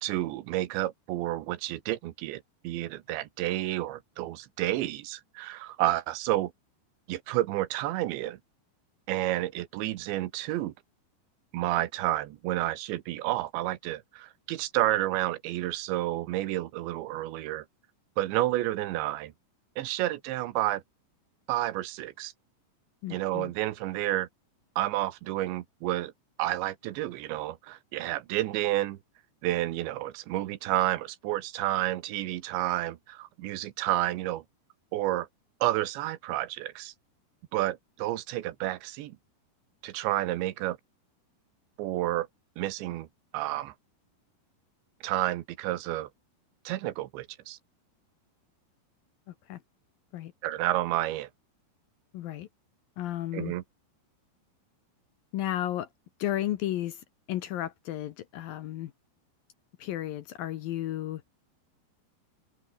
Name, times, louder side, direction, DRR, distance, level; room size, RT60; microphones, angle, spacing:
voice 1, 0.0-6.5 7.1-8.4 9.1-10.7 11.5-17.7 18.2-19.3 19.8-20.8 21.5-22.3 23.1-24.3 24.8-26.1 26.4-29.0 29.4-34.4 34.9-35.3 35.6-36.9 37.5-39.2 39.8-40.8 41.8-42.3 42.6-43.1 43.3-43.7 45.0-46.1 46.7-47.6 50.4-51.3 53.3-53.6, right 15 dB, 85° right, 3.5 m, -30 dB
voice 2, 23.0-23.5 49.5-49.6 50.1-50.3 52.1-52.5 53.0-53.5 55.3-55.9 56.2-58.9 59.8-61.2, left 13 dB, 70° left, 2.4 m, -33 dB
omnidirectional pair, 5.1 m